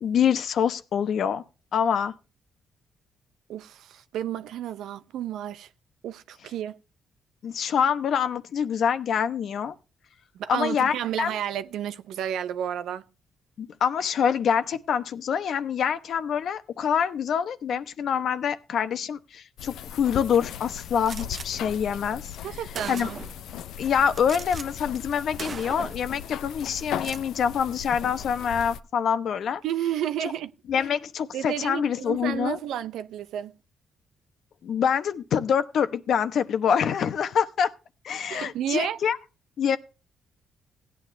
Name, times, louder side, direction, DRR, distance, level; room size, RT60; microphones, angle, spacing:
voice 1, 0.0-1.4 1.7-2.1 7.4-9.7 10.5-11.3 13.6-22.3 22.9-23.1 23.8-29.6 30.7-32.6 34.6-37.7 38.0-39.2 39.6-39.8, left 7 dB, 65° left, 0.9 m, -25 dB
voice 2, 3.5-5.7 6.0-6.8 10.3-13.0 22.4-23.2 29.6-30.5 31.3-33.6 38.3-39.0, right 10 dB, 80° right, 0.7 m, -31 dB
sound 1, 19.6-28.8, left 9 dB, 80° left, 0.6 m, -38 dB
Gunshot gunfire, 21.1-21.5 22.3-22.4 22.7-23.4 24.2-24.7 25.0-25.1 25.4-26.1 26.9-27.3, right 5 dB, 40° right, 0.5 m, -38 dB
16.5 x 9.4 x 3.3 m
cardioid pair, 90°, 0 cm